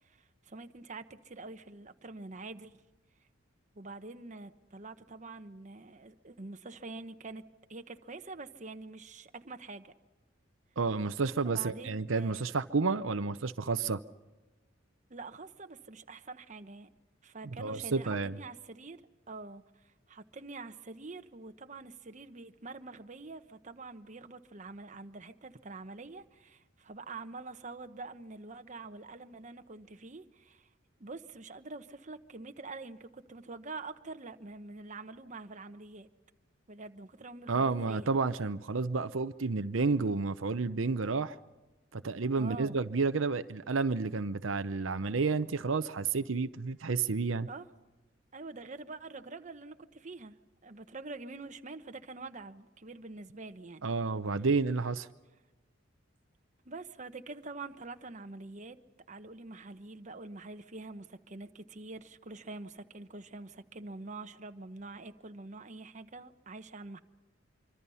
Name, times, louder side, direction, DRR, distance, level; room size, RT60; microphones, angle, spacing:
voice 1, 0.0-2.8 3.7-7.4 7.7-9.9 11.4-12.5 15.1-16.9 17.2-19.0 19.3-30.7 31.0-36.1 36.7-38.1 42.4-42.8 47.5-47.7 48.3-50.4 50.6-53.9 56.6-58.8 59.1-67.0, right 3 dB, 40° right, 8 dB, 1.0 m, -46 dB
voice 2, 10.8-14.0 17.6-18.3 37.5-41.4 41.9-47.5 53.8-55.1, right 4 dB, 80° right, 10 dB, 0.7 m, -30 dB
25.5 x 25.0 x 5.6 m, 1.1 s
head